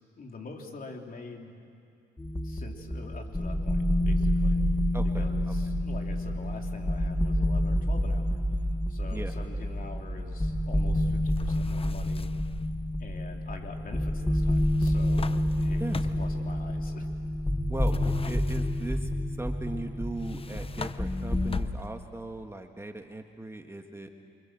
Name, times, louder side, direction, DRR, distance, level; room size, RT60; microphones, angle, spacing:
voice 1, 0.2-1.6 2.4-4.6 5.1-12.3 13.0-17.1, left 3 dB, 45° left, 2 dB, 3.4 m, -45 dB
sound 1, 2.2-21.6, left 1 dB, 10° left, 1.2 m, -28 dB
voice 2, 4.9-5.5 9.1-9.3 15.8-16.0 17.7-24.1, right 2 dB, 15° right, 5 dB, 1.6 m, -38 dB
sound 2, 11.3-12.6 14.6-16.4 17.8-19.0 20.2-22.1, left 4 dB, 30° left, 0.8 m, -40 dB
27.5 x 25.0 x 7.6 m, 2.5 s
cardioid pair, 90°, 20 cm